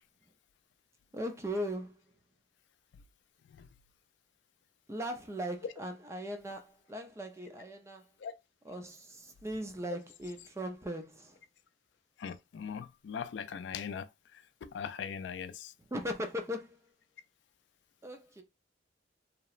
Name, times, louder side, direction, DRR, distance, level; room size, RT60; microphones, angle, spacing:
voice 1, 1.1-2.0 4.9-8.0 8.6-11.4 15.9-16.8 18.0-18.4, equal, 15° right, 0.4 m, -39 dB
voice 2, 12.2-14.1 14.6-15.7, left 7 dB, 80° left, 0.3 m, -40 dB
2.8 x 2.0 x 2.4 m
head